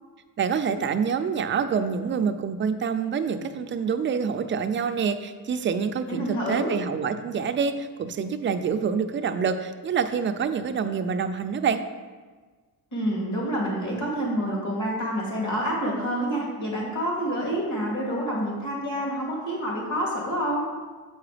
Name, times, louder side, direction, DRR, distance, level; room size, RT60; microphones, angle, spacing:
voice 1, 0.4-11.8, right 6 dB, 30° right, 8 dB, 0.4 m, -26 dB
voice 2, 6.1-6.7 12.9-20.6, equal, 45° left, -3 dB, 2.3 m, -28 dB
7.7 x 4.8 x 4.9 m, 1.4 s
cardioid pair, 160°, 41 cm